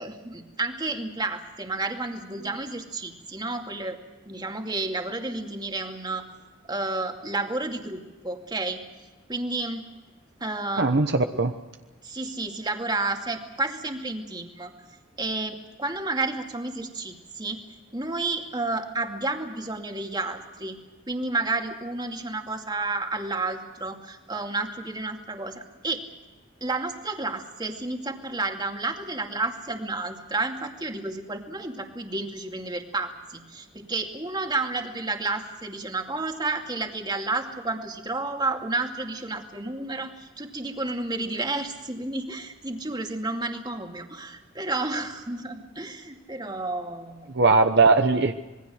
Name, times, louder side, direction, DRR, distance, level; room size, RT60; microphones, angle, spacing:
voice 1, 0.0-6.3 6.7-8.8 9.3-9.9 10.4-10.9 12.0-14.7 15.2-17.6 17.9-20.8 21.1-26.0 26.6-47.3, right 2 dB, 20° right, 4 dB, 2.4 m, -31 dB
voice 2, 10.8-11.5 47.3-48.3, right 3 dB, 60° right, 7 dB, 1.1 m, -19 dB
26.5 x 21.5 x 6.5 m, 1.1 s
head